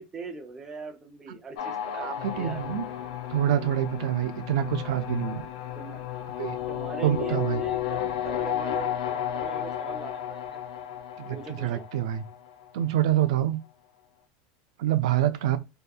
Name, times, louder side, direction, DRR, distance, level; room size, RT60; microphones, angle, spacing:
voice 1, 0.0-2.6 5.8-6.0 6.7-10.6 11.3-11.9 15.0-15.3, right 4 dB, 20° right, 0.5 m, -41 dB
sound 1, 1.6-12.7, left 11 dB, 85° left, 0.5 m, -33 dB
voice 2, 2.0-2.9 3.3-5.4 6.4-6.6 7.0-7.6 11.2-12.2 12.7-13.6 14.8-15.6, right 12 dB, 85° right, 0.3 m, -26 dB
2.7 x 2.2 x 2.2 m
supercardioid pair, 145°, 3 cm